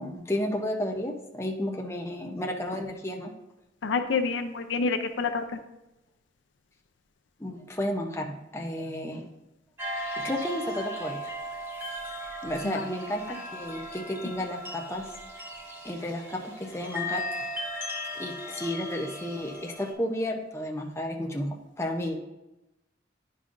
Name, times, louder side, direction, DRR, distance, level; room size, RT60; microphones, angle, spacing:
voice 1, 0.0-3.3 7.4-9.3 10.2-11.2 12.4-15.1 15.8-17.5 18.1-22.2, left 1 dB, 15° left, 1 dB, 0.6 m, -32 dB
voice 2, 3.8-5.4 12.6-12.8, left 4 dB, 75° left, 8 dB, 0.5 m, -28 dB
sound 1, 9.8-19.9, equal, 10° right, 1.2 m, -37 dB
9.9 x 5.4 x 2.5 m, 0.97 s
head